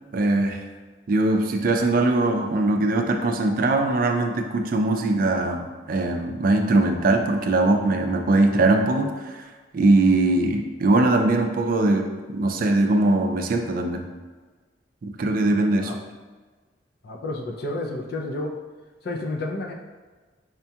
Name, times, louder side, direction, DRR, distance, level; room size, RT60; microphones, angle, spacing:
voice 1, 0.1-0.6 1.1-9.4 9.7-14.1 15.0-15.9, right 2 dB, 50° right, 4 dB, 0.4 m, -21 dB
voice 2, 17.0-18.6 19.0-19.7, left 2 dB, 60° left, 1 dB, 0.5 m, -30 dB
5.0 x 2.3 x 2.8 m, 1.4 s
head